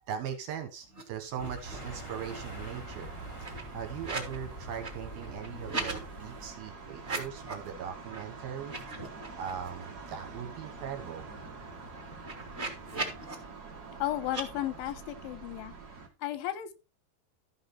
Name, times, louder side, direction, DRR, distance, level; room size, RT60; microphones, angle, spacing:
voice 1, 0.1-3.1 3.7-8.7 9.4-11.2, right 8 dB, 65° right, 2.7 m, -39 dB
sound 1, 0.9-1.0 1.3-2.0 2.3-4.4 4.7-6.0 6.9-7.7 8.1-8.2 8.6-9.9 10.3-10.4 10.7-13.3 14.2-14.4, right 3 dB, 25° right, 1.4 m, -40 dB
sound 2, 1.4-6.5, right 1 dB, 40° left, 1.1 m, -45 dB
sound 3, 1.6-16.1, right 4 dB, 85° right, 0.8 m, -46 dB
voice 2, 14.0-15.7 16.2-16.7, left 14 dB, 85° left, 3.4 m, -34 dB
13.5 x 6.0 x 4.3 m
omnidirectional pair, 5.4 m